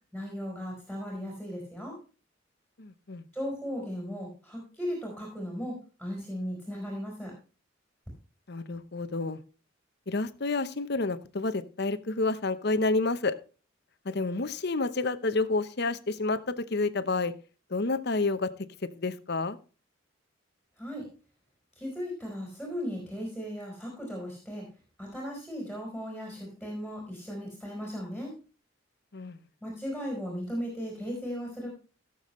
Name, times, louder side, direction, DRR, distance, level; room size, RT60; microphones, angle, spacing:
voice 1, 0.1-2.0 3.3-7.3 20.8-21.1 21.8-24.7 25.0-28.3 29.6-31.7, equal, ahead, -1 dB, 4.4 m, -36 dB
voice 2, 2.8-3.2 8.5-9.4 10.1-13.3 14.0-17.3 17.7-18.5 19.0-19.6 29.1-29.4, left 3 dB, 55° left, 12 dB, 0.9 m, -29 dB
17.0 x 7.1 x 3.2 m, 0.35 s
head